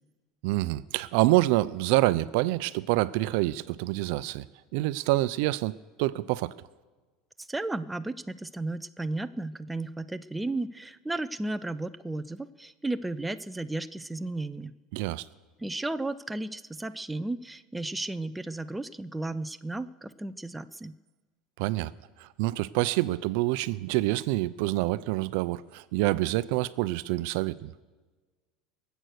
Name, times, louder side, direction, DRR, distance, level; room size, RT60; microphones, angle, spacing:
voice 1, 0.4-4.4 4.7-5.7 6.0-6.5 14.9-15.2 21.6-21.9 22.2-27.7, right 18 dB, 70° right, 16 dB, 0.5 m, -27 dB
voice 2, 7.4-14.7 15.6-20.9, right 2 dB, 5° right, 11 dB, 0.4 m, -34 dB
23.0 x 8.0 x 6.5 m, 1.3 s
cardioid pair, 150°, 0 cm